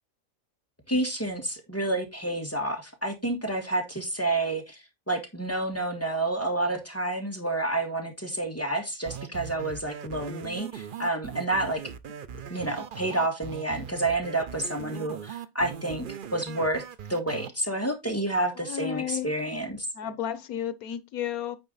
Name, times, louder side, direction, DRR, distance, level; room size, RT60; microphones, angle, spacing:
voice 1, 0.9-11.8 12.5-16.0 16.3-16.8 17.1-19.9, right 2 dB, 10° left, 1.6 m, -29 dB
sound 1, 9.1-17.5, right 8 dB, 50° right, 0.6 m, -40 dB
voice 2, 18.7-19.3 19.9-21.6, left 10 dB, 90° left, 1.3 m, -32 dB
9.1 x 4.7 x 4.0 m
omnidirectional pair, 1.5 m